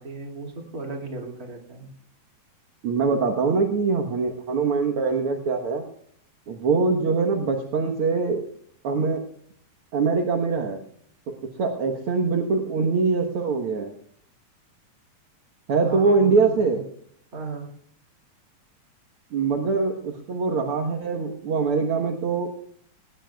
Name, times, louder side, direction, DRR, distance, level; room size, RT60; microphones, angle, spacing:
voice 1, 0.0-1.9 15.8-16.8 17.3-17.7, right 3 dB, 30° right, 2 dB, 2.5 m, -36 dB
voice 2, 2.8-5.8 6.5-8.4 8.8-9.2 9.9-10.8 11.3-11.4 11.6-13.9 15.7-16.8 19.3-22.5, right 4 dB, 55° right, 1 dB, 1.6 m, -23 dB
19.5 x 18.5 x 2.3 m, 0.62 s
omnidirectional pair, 4.0 m